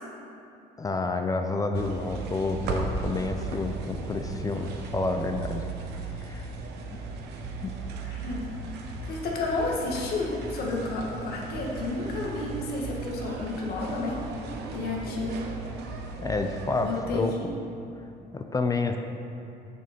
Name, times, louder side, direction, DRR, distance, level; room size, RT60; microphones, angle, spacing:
voice 1, 0.8-5.6 6.2-6.5 7.6-7.8 16.2-17.5 18.3-19.0, left 3 dB, 20° left, 5 dB, 0.5 m, -29 dB
sound 1, 1.7-17.0, right 4 dB, 80° right, 0.9 m, -36 dB
voice 2, 8.1-8.4 9.0-14.2 14.7-15.4 16.8-17.5, left 3 dB, 65° left, -2 dB, 1.6 m, -31 dB
6.9 x 6.5 x 5.1 m, 2.6 s
cardioid pair, 110°, 17 cm